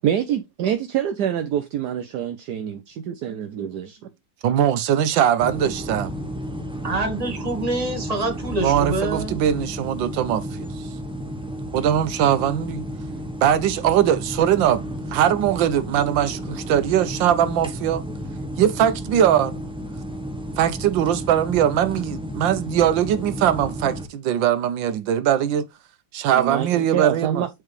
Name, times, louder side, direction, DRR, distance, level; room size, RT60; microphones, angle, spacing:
voice 1, 0.0-4.1 26.3-27.5, right 10 dB, 70° right, 1.2 m, -26 dB
voice 2, 4.4-6.1 8.6-10.7 11.7-12.8 13.4-14.8 15.1-18.0 18.6-19.5 20.6-25.7 26.1-27.4, right 10 dB, 90° right, 1.5 m, -21 dB
sound 1, 5.4-24.1, equal, 5° right, 0.6 m, -32 dB
voice 3, 6.8-9.4, right 2 dB, 20° right, 1.6 m, -26 dB
7.8 x 4.7 x 3.2 m
omnidirectional pair, 2.0 m